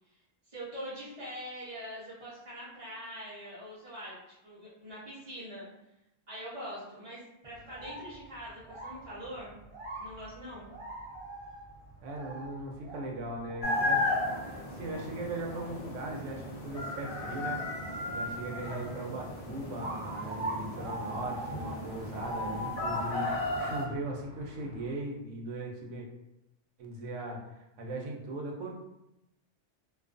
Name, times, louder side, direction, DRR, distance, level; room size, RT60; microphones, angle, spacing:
voice 1, 0.4-4.1 4.4-5.6 6.3-9.5 10.0-10.7, equal, 30° right, -12 dB, 0.7 m, -43 dB
sound 1, 7.5-24.9, right 2 dB, 50° right, 0.4 m, -44 dB
voice 2, 12.0-14.0 14.7-17.6 18.1-26.1 26.8-28.7, right 1 dB, 85° right, 0 dB, 1.0 m, -39 dB
sound 2, 13.6-23.8, left 2 dB, 55° left, 0.4 m, -35 dB
2.4 x 2.3 x 2.4 m, 0.90 s
omnidirectional pair, 1.2 m